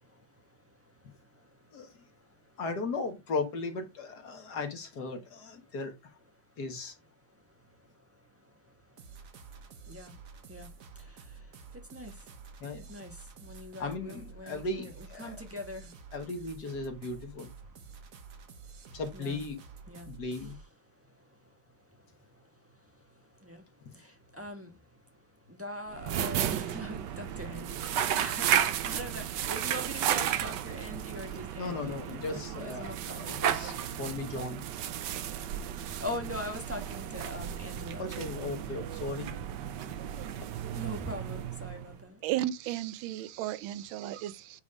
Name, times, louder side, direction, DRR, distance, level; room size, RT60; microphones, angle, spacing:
voice 1, 0.0-2.6 5.7-5.8 6.4-6.6 7.3-16.1 17.7-19.4 19.9-20.4 20.9-32.0 32.3-33.9 35.0-38.1 39.7-42.2, left 1 dB, 10° right, 1.2 m, -45 dB
voice 2, 1.7-2.1 2.6-6.1 6.6-6.9 12.6-13.0 13.8-15.4 16.1-17.5 18.9-19.6 20.1-20.6 31.6-34.6 38.0-39.3 39.8-39.9, left 3 dB, 55° left, 1.9 m, -37 dB
sound 1, 9.0-20.7, right 5 dB, 50° right, 1.2 m, -50 dB
sound 2, 25.9-42.0, right 10 dB, 70° right, 1.2 m, -33 dB
voice 3, 42.2-44.6, right 13 dB, 85° right, 1.4 m, -34 dB
8.3 x 3.5 x 4.9 m
omnidirectional pair, 2.1 m